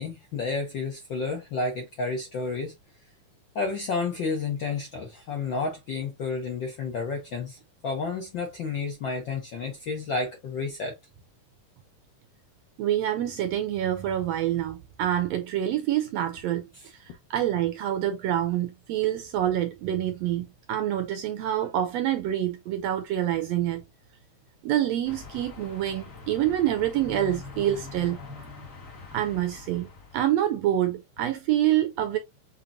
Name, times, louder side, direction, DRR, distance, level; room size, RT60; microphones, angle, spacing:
voice 1, 0.0-2.7 3.5-7.6 7.8-11.0 16.7-16.8, left 4 dB, 80° left, 1.0 m, -31 dB
voice 2, 12.8-23.8 24.6-28.2 29.1-32.2, right 12 dB, 75° right, 1.6 m, -27 dB
sound 1, 25.0-30.3, left 4 dB, 35° left, 1.5 m, -43 dB
6.5 x 2.9 x 2.6 m
omnidirectional pair, 3.5 m